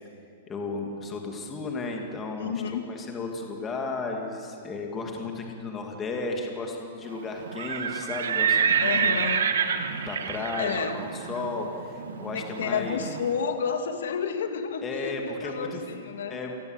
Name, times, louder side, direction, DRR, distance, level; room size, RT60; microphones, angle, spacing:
voice 1, 0.5-9.2 9.9-13.0 14.8-15.8 16.3-16.5, left 3 dB, 15° left, 2 dB, 2.3 m, -34 dB
voice 2, 2.4-2.8 8.8-9.5 10.6-11.0 12.3-16.4, left 6 dB, 85° left, 6 dB, 2.5 m, -30 dB
Livestock farm animals working animals, 7.4-13.3, right 6 dB, 90° right, 2.0 m, -28 dB
28.0 x 20.5 x 8.1 m, 2.4 s
supercardioid pair, 170°, 0 cm